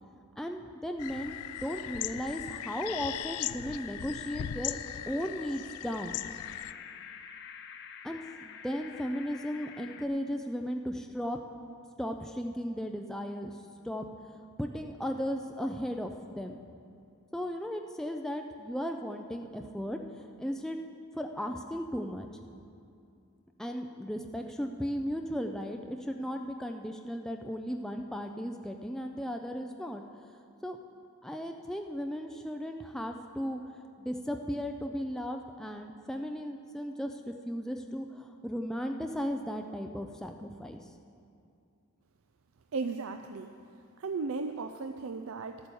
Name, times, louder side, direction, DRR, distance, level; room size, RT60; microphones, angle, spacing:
voice 1, 0.4-4.8 5.1-6.2 8.0-11.4 12.0-13.6 13.8-14.0 14.6-16.6 17.3-20.8 21.1-22.3 23.6-30.0 30.6-30.8 31.2-33.6 34.0-40.9, equal, ahead, 3 dB, 0.4 m, -36 dB
sound 1, 1.0-6.7, left 11 dB, 85° left, 0.4 m, -38 dB
sound 2, 6.1-10.1, left 7 dB, 50° left, 0.6 m, -48 dB
voice 2, 42.7-43.5 44.0-45.7, right 4 dB, 65° right, 7 dB, 0.4 m, -35 dB
12.5 x 8.9 x 7.0 m, 2.5 s
head